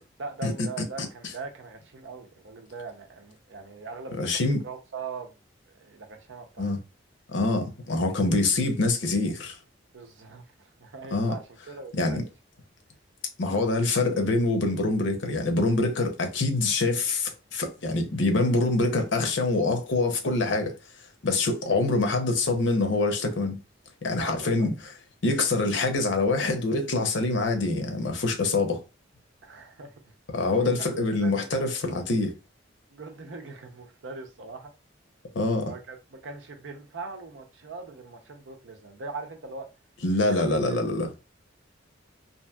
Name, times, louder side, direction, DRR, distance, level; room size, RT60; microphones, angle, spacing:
voice 1, 0.2-5.4 5.7-6.7 9.9-12.3 24.2-24.7 29.4-30.1 30.5-31.8 32.9-34.7 35.6-39.7 40.3-40.9, right 4 dB, 75° right, 0.6 m, -41 dB
voice 2, 4.2-4.6 6.6-6.8 7.3-9.6 11.1-11.3 12.0-12.2 13.4-20.7 21.2-23.6 24.0-24.7 25.2-28.8 30.3-32.3 35.3-35.7 40.0-41.1, left 2 dB, 70° left, 0.7 m, -25 dB
2.9 x 2.6 x 2.3 m
head